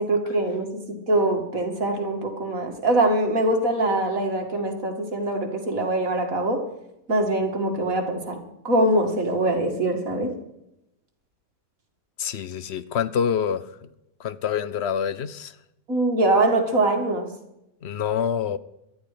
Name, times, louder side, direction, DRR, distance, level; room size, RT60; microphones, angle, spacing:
voice 1, 0.0-6.6 7.1-8.4 8.6-10.3 15.9-17.3, right 2 dB, 55° right, 3 dB, 2.7 m, -23 dB
voice 2, 12.2-13.9 14.2-15.5 17.8-18.6, left 8 dB, 55° left, 15 dB, 0.8 m, -26 dB
18.5 x 12.5 x 5.1 m, 0.85 s
omnidirectional pair, 1.8 m